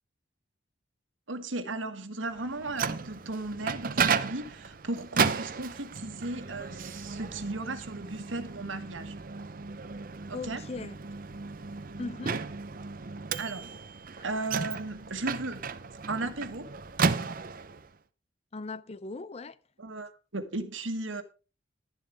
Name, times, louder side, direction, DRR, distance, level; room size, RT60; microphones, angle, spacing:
voice 1, 1.3-9.1 10.3-10.6 13.4-13.8 14.2-16.7 19.8-21.2, right 2 dB, 85° right, 1.6 m, -36 dB
Microwave oven, 2.4-17.9, right 5 dB, 45° right, 0.7 m, -34 dB
voice 2, 10.3-11.0 12.0-12.4 18.5-19.6, left 3 dB, 35° left, 0.5 m, -38 dB
11.5 x 11.0 x 3.4 m
head